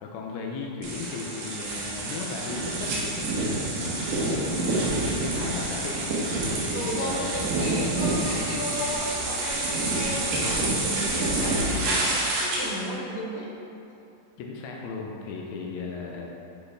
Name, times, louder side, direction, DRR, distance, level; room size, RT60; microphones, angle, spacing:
voice 1, 0.0-7.4 14.4-16.3, left 4 dB, 90° left, -1 dB, 1.5 m, -36 dB
Brake Grass Med Speed OS, 0.8-12.8, right 2 dB, 90° right, 3.0 m, -28 dB
voice 2, 6.7-13.5, left 1 dB, 65° left, -4 dB, 1.7 m, -34 dB
9.8 x 4.3 x 3.3 m, 2.7 s
omnidirectional pair, 4.0 m